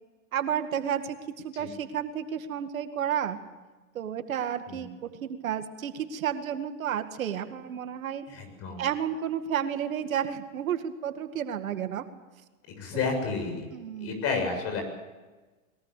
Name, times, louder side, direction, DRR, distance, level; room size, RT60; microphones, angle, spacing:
voice 1, 0.3-1.2 1.4-3.4 3.9-8.2 8.8-12.1 13.7-14.2, right 9 dB, 80° right, 8 dB, 2.2 m, -31 dB
voice 2, 8.3-8.8 12.8-13.7 14.0-14.8, left 4 dB, 35° left, 5 dB, 7.3 m, -31 dB
22.0 x 19.5 x 8.5 m, 1.2 s
hypercardioid pair, 135°, 40 cm